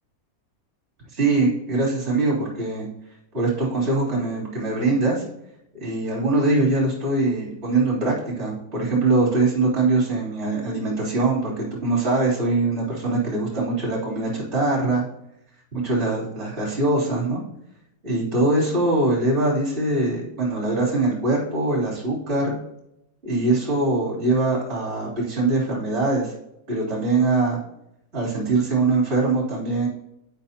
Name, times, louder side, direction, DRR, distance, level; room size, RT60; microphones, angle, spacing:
voice 1, 1.1-2.8 3.3-5.2 5.7-15.0 15.7-17.4 18.0-22.5 23.2-26.3 26.7-27.6 28.1-29.9, right 2 dB, 40° right, -8 dB, 3.6 m, -22 dB
11.5 x 5.5 x 2.9 m, 0.82 s
omnidirectional pair, 1.7 m